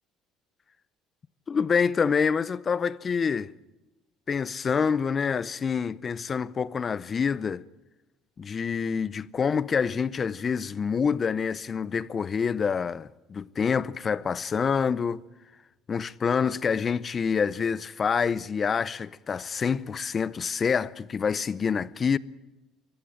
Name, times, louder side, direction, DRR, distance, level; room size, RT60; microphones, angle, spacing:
voice 1, 1.5-3.5 4.3-7.6 8.4-15.2 15.9-22.2, left 6 dB, 30° left, 0.6 m, -27 dB
24.5 x 14.5 x 9.0 m
cardioid pair, 115°, 0 cm